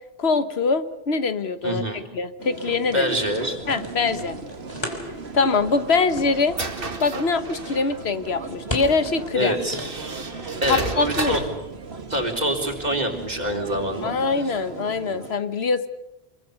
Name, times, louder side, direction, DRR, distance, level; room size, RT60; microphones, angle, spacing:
voice 1, 0.2-1.8 2.1-3.1 3.7-4.4 5.3-6.6 7.0-9.6 10.7-11.4 14.0-15.9, left 4 dB, 85° left, 12 dB, 1.5 m, -23 dB
voice 2, 1.6-2.0 2.9-3.6 9.3-9.8 10.6-11.4 12.1-14.2 14.5-14.6, equal, 45° right, 3 dB, 3.9 m, -25 dB
sound 1, 2.4-15.3, right 4 dB, 90° right, 2.1 m, -37 dB
sound 2, 3.2-14.1, left 1 dB, 25° left, 3.5 m, -39 dB
sound 3, 5.5-8.0 8.8-8.9 9.5-11.6, right 2 dB, 65° right, 2.2 m, -33 dB
25.5 x 23.0 x 7.0 m, 0.87 s
omnidirectional pair, 1.0 m